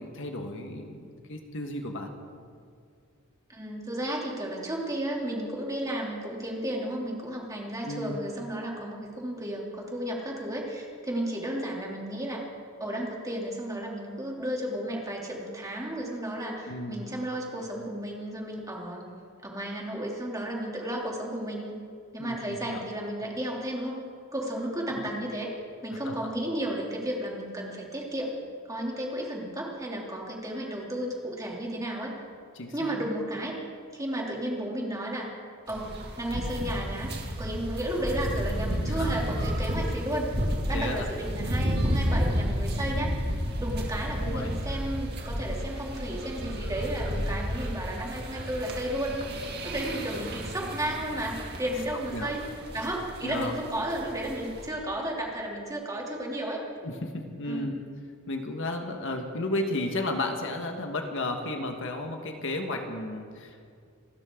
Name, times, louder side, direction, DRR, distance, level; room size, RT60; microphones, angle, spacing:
voice 1, 0.0-2.1 7.8-8.1 16.7-17.0 22.2-22.8 24.9-25.0 26.0-26.2 32.5-32.9 38.9-39.1 40.7-41.1 44.2-44.5 52.1-52.3 53.2-53.5 56.8-57.7 58.3-63.7, left 2 dB, 65° left, 4 dB, 1.6 m, -33 dB
voice 2, 3.5-12.4 12.8-19.1 19.4-21.7 22.1-24.0 24.3-25.5 25.8-28.3 28.7-32.2 32.7-33.6 33.9-35.3 35.7-40.3 40.7-43.2 43.6-49.1 49.4-52.5 52.7-56.6 57.4-57.7, right 1 dB, 15° right, -2 dB, 2.9 m, -33 dB
sound 1, 35.7-54.7, equal, 50° right, 2.3 m, -32 dB
28.0 x 13.0 x 3.8 m, 2.2 s
head